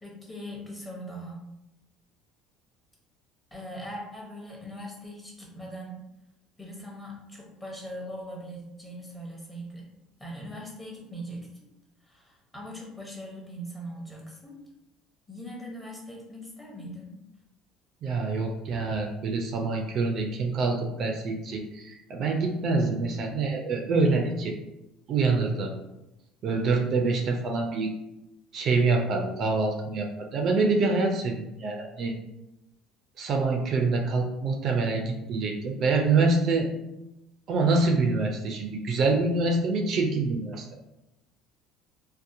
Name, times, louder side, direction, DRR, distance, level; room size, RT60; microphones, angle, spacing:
voice 1, 0.0-1.4 3.5-6.0 6.6-9.9 10.2-11.5 12.0-14.6 15.3-17.1, equal, 10° left, -2 dB, 0.8 m, -40 dB
voice 2, 18.0-24.6 25.1-25.7 26.4-27.9 28.5-32.1 33.2-36.7 37.5-40.6, right 3 dB, 50° right, 2 dB, 0.3 m, -26 dB
2.7 x 2.0 x 2.5 m, 0.90 s
cardioid pair, 120°, 0 cm